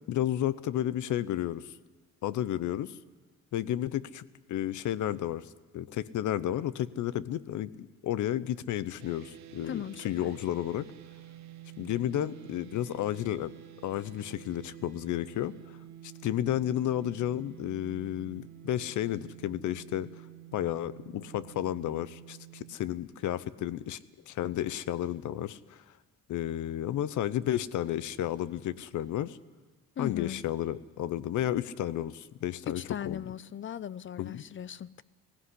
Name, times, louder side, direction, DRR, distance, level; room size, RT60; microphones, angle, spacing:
voice 1, 0.1-1.7 2.2-3.0 3.5-10.9 11.8-13.5 13.8-15.6 16.0-20.1 20.5-24.0 24.3-25.8 26.3-29.4 30.0-33.2 34.2-34.4, left 12 dB, 75° left, 0.8 m, -32 dB
sound 1, 9.0-22.7, right 12 dB, 65° right, 1.4 m, -49 dB
voice 2, 9.6-10.3 30.0-30.4 32.8-35.0, left 9 dB, 40° left, 0.6 m, -38 dB
17.0 x 16.0 x 9.8 m
cardioid pair, 90°, 30 cm